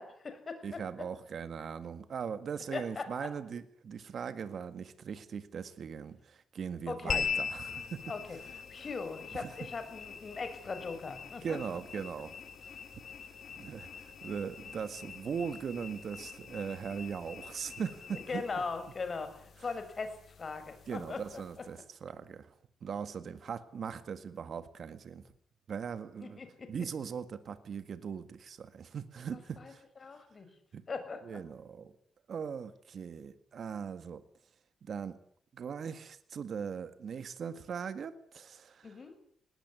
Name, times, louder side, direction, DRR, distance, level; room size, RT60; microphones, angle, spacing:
voice 1, 0.0-0.8 2.7-3.3 6.9-7.3 8.1-8.4 8.7-11.6 18.3-21.4 26.2-26.7 29.6-29.7 30.0-30.5 30.9-31.4 38.8-39.1, left 4 dB, 40° left, 9 dB, 6.3 m, -40 dB
voice 2, 0.6-8.0 9.3-9.5 11.4-12.3 12.6-12.8 13.6-18.4 20.9-22.5 22.8-25.2 25.7-26.4 26.7-29.8 30.7-30.8 31.2-31.9 32.3-34.2 34.8-35.2 35.5-39.0, right 6 dB, 60° right, 11 dB, 1.8 m, -40 dB
sound 1, 7.1-21.7, left 7 dB, 60° left, 4.0 m, -43 dB
20.5 x 19.0 x 9.7 m, 0.64 s
cardioid pair, 95°, 0 cm